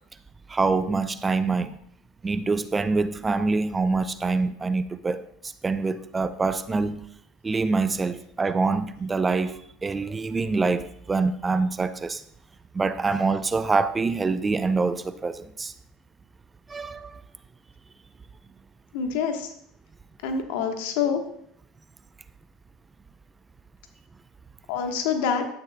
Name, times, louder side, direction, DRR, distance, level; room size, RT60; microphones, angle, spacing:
voice 1, 0.5-1.8 2.2-7.0 7.4-12.2 12.7-15.7 16.7-17.2, right 4 dB, 20° right, 0.5 m, -25 dB
voice 2, 18.9-19.5 20.2-21.2 24.7-25.4, left 6 dB, 70° left, 1.2 m, -26 dB
11.5 x 9.1 x 2.2 m
hypercardioid pair, 75°, 0 cm